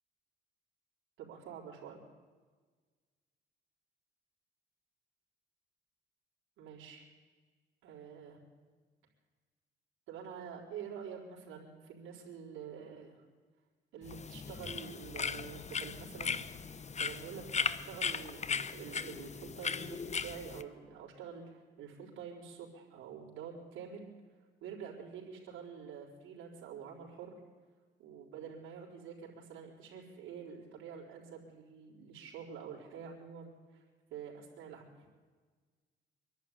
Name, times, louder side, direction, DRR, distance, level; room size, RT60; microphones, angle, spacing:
voice 1, 1.2-2.0 6.6-7.0 7.8-8.4 10.1-13.2 13.9-24.1 24.6-27.4 28.0-33.8 34.1-34.9, right 7 dB, 85° right, -4 dB, 4.3 m, -47 dB
sound 1, 14.0-20.6, left 6 dB, 35° left, 1.0 m, -38 dB
24.0 x 11.5 x 10.0 m, 1.4 s
cardioid pair, 90°, 20 cm